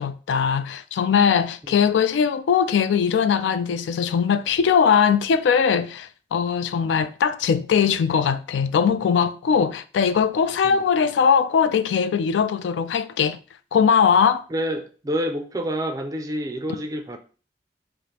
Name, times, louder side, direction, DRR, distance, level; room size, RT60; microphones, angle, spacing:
voice 1, 0.0-13.4 13.7-14.4, left 7 dB, 85° left, 0.3 m, -20 dB
voice 2, 14.5-17.2, equal, 20° right, 0.3 m, -28 dB
4.9 x 2.0 x 2.8 m
head